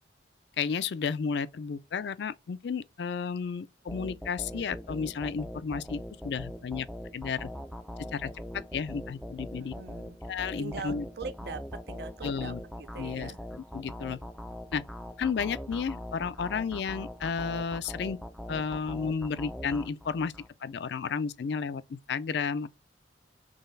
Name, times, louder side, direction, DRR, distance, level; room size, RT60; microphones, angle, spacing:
voice 1, 0.6-6.9 7.1-7.5 8.1-8.3 8.7-9.7 10.3-11.0 12.2-12.6 13.0-13.3 13.7-14.2 14.7-14.8 15.2-18.2 18.5-20.3 20.6-22.7, left 6 dB, 70° left, 0.4 m, -32 dB
sound 1, 3.9-20.5, equal, ahead, 0.3 m, -42 dB
voice 2, 9.6-10.2 10.6-13.4, right 5 dB, 60° right, 0.5 m, -42 dB
3.9 x 3.2 x 3.9 m
head